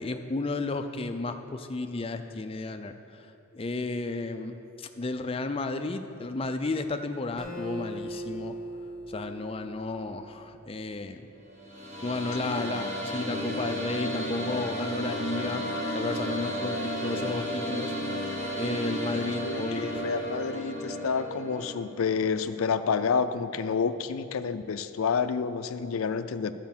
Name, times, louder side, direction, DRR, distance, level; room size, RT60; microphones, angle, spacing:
voice 1, 0.0-3.3 3.5-8.6 9.1-11.3 12.0-15.7 15.9-17.9 18.5-20.1, left 3 dB, 25° left, 8 dB, 0.4 m, -33 dB
Acoustic guitar, 7.4-10.8, equal, 5° left, 1.3 m, -40 dB
sound 1, 11.5-21.7, equal, 35° right, 1.3 m, -33 dB
voice 2, 19.4-26.5, left 5 dB, 85° left, 11 dB, 0.4 m, -29 dB
12.0 x 5.1 x 7.2 m, 2.9 s
head